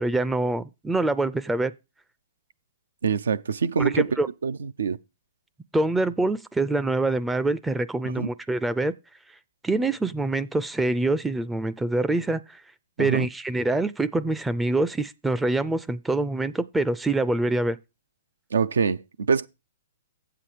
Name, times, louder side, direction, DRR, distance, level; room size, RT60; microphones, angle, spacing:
voice 1, 0.0-1.7 3.8-4.3 5.7-8.9 9.6-12.4 13.0-17.8, right 2 dB, 5° right, 0.4 m, -25 dB
voice 2, 3.0-4.1 4.4-5.0 8.0-8.3 13.0-13.3 18.5-19.5, right 6 dB, 80° right, 0.5 m, -25 dB
8.2 x 7.6 x 4.9 m
hypercardioid pair, 130°, 0 cm